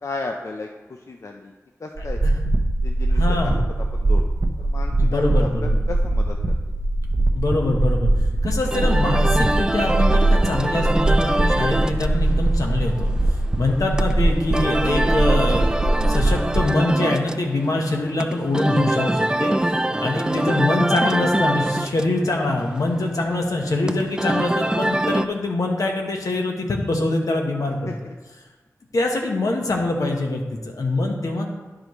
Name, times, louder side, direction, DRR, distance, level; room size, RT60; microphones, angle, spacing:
voice 1, 0.0-0.7 1.1-1.5 1.8-2.2 2.8-3.5 4.0-4.3 4.6-6.4 13.7-13.8 17.7-17.9 20.3-20.5 27.9-28.1, left 3 dB, 60° left, 2 dB, 0.5 m, -34 dB
voice 2, 2.0-2.3 3.1-3.6 5.0-5.8 7.3-8.1 8.4-13.1 13.6-28.1 28.9-31.5, left 2 dB, 85° left, 1 dB, 1.2 m, -24 dB
sound 1, 2.0-16.6, right 2 dB, 50° right, 0.8 m, -21 dB
sound 2, 8.6-25.3, right 1 dB, 15° right, 0.4 m, -25 dB
11.5 x 5.0 x 3.1 m, 1.3 s
wide cardioid pair, 75°, 6 cm